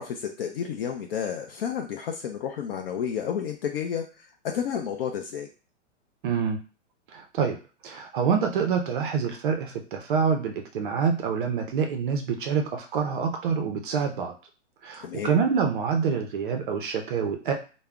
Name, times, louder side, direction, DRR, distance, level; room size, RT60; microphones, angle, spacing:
voice 1, 0.0-5.5 15.0-15.3, left 8 dB, 55° left, 3 dB, 0.4 m, -31 dB
voice 2, 6.2-6.6 7.1-7.6 7.8-14.3 14.8-17.5, right 6 dB, 45° right, 4 dB, 0.5 m, -26 dB
2.2 x 2.0 x 3.5 m, 0.35 s
hypercardioid pair, 140°, 36 cm